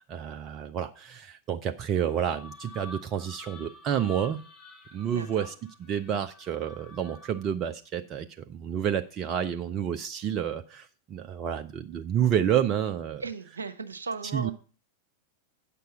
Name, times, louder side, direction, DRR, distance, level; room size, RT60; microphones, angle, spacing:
voice 1, 0.0-4.4 4.9-5.5 5.9-13.2 14.3-14.5, right 9 dB, 30° right, 7 dB, 0.6 m, -29 dB
sound 1, 1.9-7.6, left 2 dB, 25° left, 2.0 m, -48 dB
voice 2, 5.1-5.5 13.2-14.5, right 4 dB, 75° right, 10 dB, 1.0 m, -36 dB
9.2 x 6.8 x 5.0 m, 0.38 s
figure-of-eight pair, 90°, 0 cm